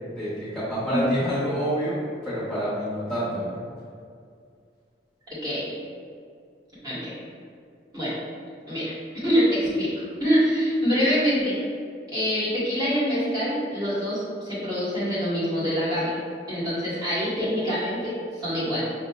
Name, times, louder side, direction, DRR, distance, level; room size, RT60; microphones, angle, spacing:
voice 1, 0.1-3.5, equal, ahead, -13 dB, 1.1 m, -27 dB
voice 2, 5.4-5.7 6.8-7.1 7.9-8.1 8.7-9.9 10.2-11.6 12.1-16.2 16.5-18.9, equal, 20° right, -11 dB, 1.4 m, -25 dB
5.6 x 2.7 x 2.4 m, 2.2 s
head